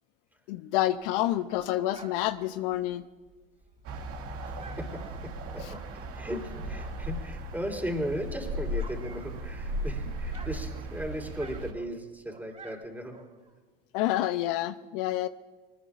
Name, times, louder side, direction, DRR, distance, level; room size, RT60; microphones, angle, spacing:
voice 1, 0.5-3.1 5.6-5.7 13.9-15.3, left 14 dB, 65° left, 13 dB, 0.6 m, -28 dB
Dog, 1.0-7.3 7.6-9.9 10.2-13.6, right 3 dB, 25° right, 3.6 m, -52 dB
sound 1, 3.8-11.7, equal, 50° right, 2.2 m, -36 dB
voice 2, 4.5-5.8 6.1-13.2, equal, 5° right, 2 dB, 3.6 m, -37 dB
24.0 x 20.0 x 2.5 m, 1.3 s
hypercardioid pair, 70°, 29 cm